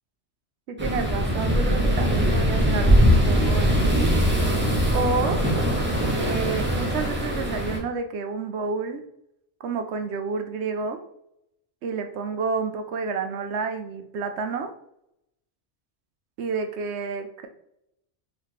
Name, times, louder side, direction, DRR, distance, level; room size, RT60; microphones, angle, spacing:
voice 1, 0.7-4.1 4.9-5.4 6.2-9.0 9.6-11.0 11.8-14.7 16.4-17.5, right 4 dB, 75° right, 6 dB, 0.9 m, -29 dB
sound 1, 0.8-7.8, equal, 10° right, 0.7 m, -21 dB
3.7 x 3.1 x 3.2 m, 0.77 s
omnidirectional pair, 1.1 m